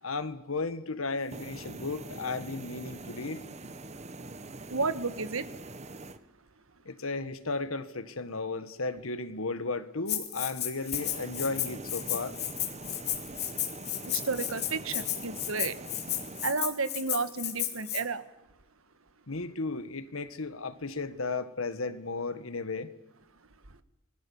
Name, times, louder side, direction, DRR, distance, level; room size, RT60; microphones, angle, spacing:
voice 1, 0.0-3.4 6.8-12.4 19.3-22.9, left 3 dB, 90° left, 1.5 m, -34 dB
sound 1, 1.2-6.2 10.7-16.5, right 2 dB, 35° right, 1.1 m, -44 dB
voice 2, 4.7-5.5 14.1-15.8 16.4-18.2, right 4 dB, 90° right, 1.6 m, -32 dB
Rattle (instrument), 10.1-18.0, left 12 dB, 55° left, 2.6 m, -33 dB
28.0 x 21.5 x 7.2 m
head